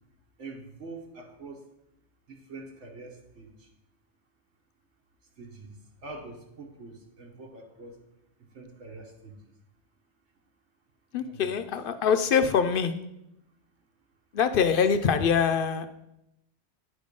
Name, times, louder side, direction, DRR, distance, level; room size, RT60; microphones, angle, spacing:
voice 1, 0.4-1.6 2.3-3.7 5.4-8.0 8.5-9.5 11.1-11.5, right 3 dB, 90° right, -1 dB, 1.3 m, -45 dB
voice 2, 11.1-12.9 14.3-16.0, left 6 dB, 60° left, 10 dB, 0.6 m, -24 dB
9.8 x 3.6 x 5.1 m, 0.84 s
omnidirectional pair, 1.1 m